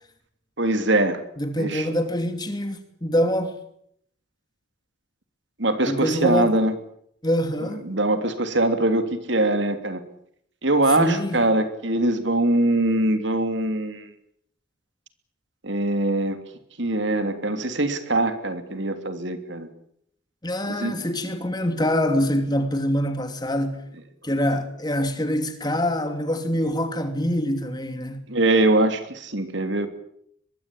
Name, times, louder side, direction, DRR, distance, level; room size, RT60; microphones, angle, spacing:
voice 1, 0.6-1.2 1.6-1.9 5.6-6.7 7.8-10.0 10.6-14.1 15.6-16.4 16.8-19.7 20.7-21.0 28.3-29.9, right 2 dB, 60° right, 3.0 m, -22 dB
voice 2, 1.4-3.5 5.8-6.5 7.2-7.8 11.0-11.4 20.4-23.8 24.2-28.2, equal, 20° left, 2.8 m, -25 dB
23.0 x 22.0 x 8.8 m
head